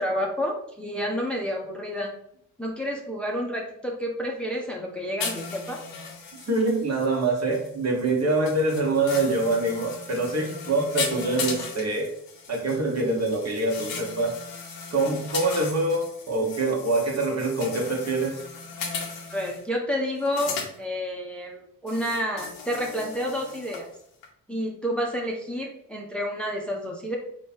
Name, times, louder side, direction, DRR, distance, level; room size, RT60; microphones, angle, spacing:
voice 1, 0.0-2.1 2.6-5.8 19.3-23.9 24.5-27.2, equal, 5° left, 0 dB, 0.7 m, -29 dB
sound 1, 5.2-19.6 20.2-20.8 21.9-23.9 24.2-24.3, left 5 dB, 80° left, 0.8 m, -37 dB
voice 2, 6.5-12.1 12.5-14.4 14.9-18.4, right 2 dB, 45° right, 0 dB, 1.2 m, -25 dB
3.1 x 2.3 x 4.2 m, 0.73 s
supercardioid pair, 55°, 36 cm